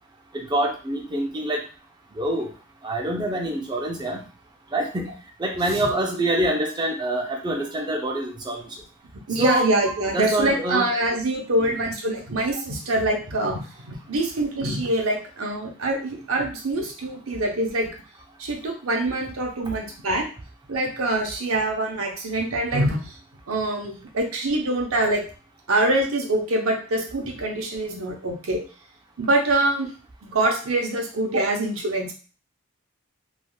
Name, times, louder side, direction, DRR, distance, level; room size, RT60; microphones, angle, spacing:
voice 1, 0.3-1.6 2.2-2.5 2.8-4.2 4.7-5.1 5.4-8.6 9.4-9.7 10.1-10.9 11.7-11.8, right 1 dB, 20° right, 2 dB, 0.4 m, -25 dB
voice 2, 9.3-13.6 13.8-17.9 18.4-20.3 20.7-23.0 23.5-25.2 25.7-28.6 29.2-29.9 30.2-32.1, right 2 dB, 80° right, 1 dB, 0.7 m, -24 dB
3.4 x 2.4 x 2.3 m, 0.37 s
head